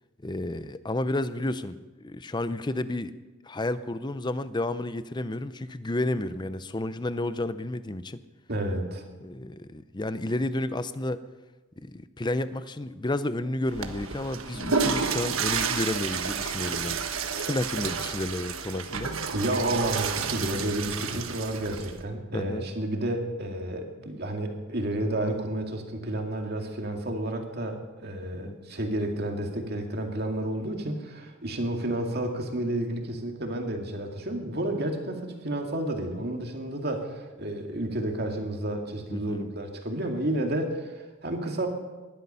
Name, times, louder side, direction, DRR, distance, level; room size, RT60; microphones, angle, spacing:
voice 1, 0.2-1.7 2.0-3.1 3.4-8.2 9.2-11.2 11.8-17.0 17.4-19.1 21.1-21.2 22.3-22.7 28.4-28.6 39.1-39.5, left 1 dB, 20° left, 13 dB, 0.6 m, -31 dB
voice 2, 8.5-9.1 19.3-41.7, right 1 dB, 50° right, 2 dB, 2.4 m, -31 dB
Water / Toilet flush, 13.7-22.0, right 5 dB, 80° right, 1.3 m, -30 dB
20.0 x 12.5 x 5.6 m, 1.2 s
head